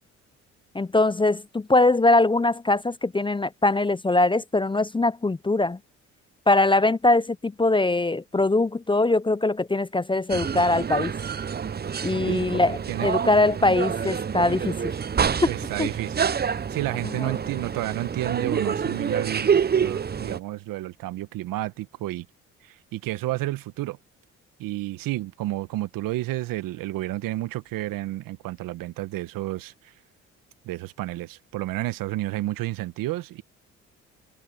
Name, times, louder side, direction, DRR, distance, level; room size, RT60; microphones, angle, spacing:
voice 1, 0.7-5.8 6.5-11.1 12.0-14.9 15.2-15.5 15.8-15.9 17.1-17.4, left 2 dB, 15° left, 0.7 m, -22 dB
sound 1, 10.3-20.4, right 7 dB, 30° right, 0.8 m, -27 dB
voice 2, 15.5-16.3 16.7-22.3 22.6-24.0 24.6-29.9 30.6-33.4, right 16 dB, 70° right, 1.4 m, -31 dB
hypercardioid pair, 55°, 34 cm